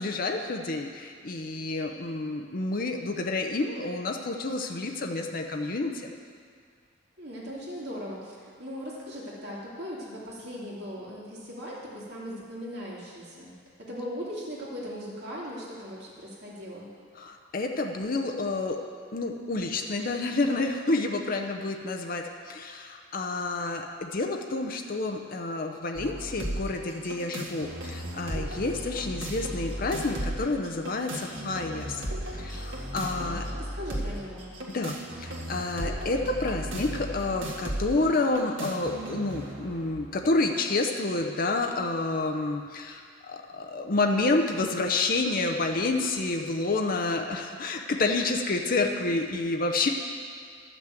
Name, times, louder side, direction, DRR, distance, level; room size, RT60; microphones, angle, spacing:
voice 1, 0.0-6.1 17.2-18.8 19.1-32.0 32.3-33.4 34.7-34.9 35.2-49.9, left 2 dB, 45° left, 3 dB, 0.7 m, -29 dB
voice 2, 7.2-13.5 13.8-16.9 33.2-34.5, equal, 55° right, -5 dB, 2.6 m, -39 dB
sound 1, 25.9-40.0, right 1 dB, 75° right, 1.6 m, -36 dB
12.0 x 6.1 x 7.6 m, 2.1 s
head